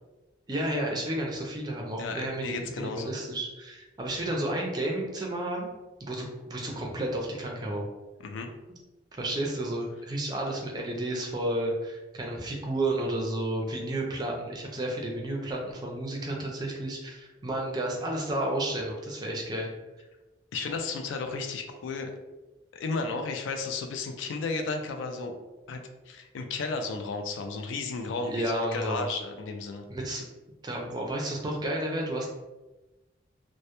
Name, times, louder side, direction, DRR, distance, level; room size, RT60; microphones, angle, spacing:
voice 1, 0.5-5.7 6.0-7.9 8.7-8.8 9.2-19.7 28.2-29.1 29.9-30.2 30.6-32.3, right 1 dB, 20° right, -1 dB, 0.4 m, -32 dB
voice 2, 2.0-3.1 8.2-8.5 20.5-22.1 22.7-25.4 25.7-29.8, left 3 dB, 85° left, 5 dB, 0.3 m, -33 dB
2.1 x 2.1 x 2.8 m, 1.1 s
head